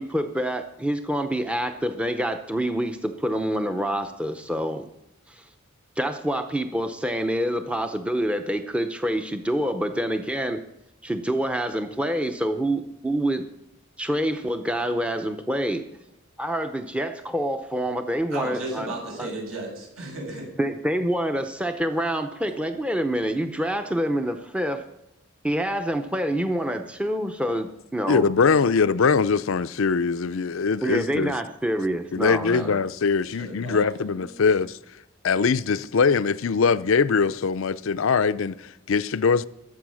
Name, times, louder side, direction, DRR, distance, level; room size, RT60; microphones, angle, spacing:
voice 1, 0.0-4.9 5.3-5.5 6.0-10.6 11.0-13.5 14.0-15.8 16.4-18.9 19.2-19.3 20.6-24.9 25.4-28.3 30.8-32.8, equal, 5° right, 0.6 m, -27 dB
voice 2, 18.3-20.5 30.7-30.9 32.5-32.7 33.3-34.4, right 2 dB, 75° right, 6.6 m, -35 dB
voice 3, 28.1-31.3 32.1-34.8 35.2-39.5, left 5 dB, 70° left, 0.5 m, -22 dB
21.0 x 7.9 x 6.3 m
head